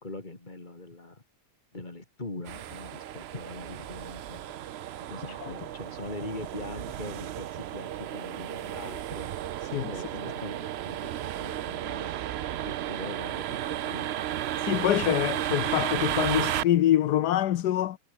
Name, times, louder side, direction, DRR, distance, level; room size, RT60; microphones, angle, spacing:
voice 1, 0.0-1.2 1.7-4.5 5.1-9.3 9.8-12.1 12.5-14.2, left 2 dB, 30° left, 2.9 m, -42 dB
sound 1, 2.5-16.6, right 12 dB, 70° right, 0.6 m, -33 dB
voice 2, 14.7-18.0, left 12 dB, 85° left, 1.4 m, -25 dB
omnidirectional pair, 1.7 m